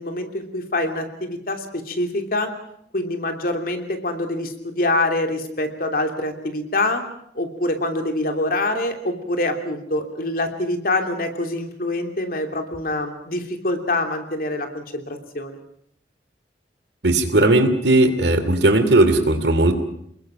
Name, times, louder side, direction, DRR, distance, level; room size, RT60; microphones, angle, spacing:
voice 1, 0.0-2.5 2.9-7.0 7.3-15.6, left 2 dB, 55° left, 5 dB, 3.1 m, -25 dB
voice 2, 17.0-19.7, right 2 dB, 70° right, 9 dB, 2.8 m, -17 dB
29.5 x 21.0 x 6.0 m, 0.70 s
head